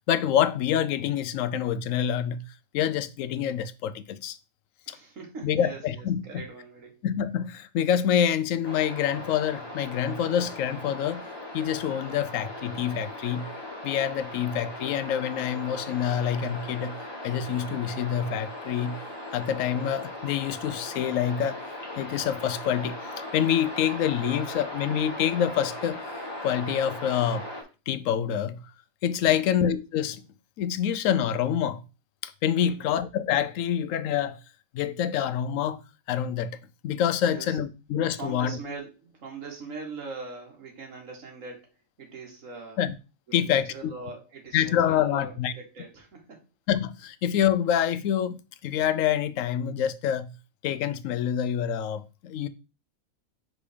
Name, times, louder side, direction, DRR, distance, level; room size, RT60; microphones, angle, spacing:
voice 1, 0.1-2.4 2.7-4.4 4.9-5.0 5.4-6.2 7.0-11.2 11.5-13.5 13.8-17.0 17.2-19.0 19.3-21.6 22.0-26.0 26.4-27.4 27.9-28.6 29.0-30.2 30.6-31.8 32.2-34.4 34.7-35.8 36.1-36.6 36.8-38.6 42.8-42.9 43.3-43.9 44.5-45.5 46.7-50.3 50.6-52.5, left 9 dB, 75° left, 0.9 m, -26 dB
voice 2, 4.9-7.1 29.2-29.5 32.6-32.9 37.2-37.6 38.2-41.7 42.0-42.8 43.3-46.4, right 4 dB, 70° right, 1.9 m, -41 dB
sound 1, 8.6-27.6, left 1 dB, 20° left, 1.5 m, -38 dB
5.2 x 3.8 x 4.9 m
omnidirectional pair, 1.4 m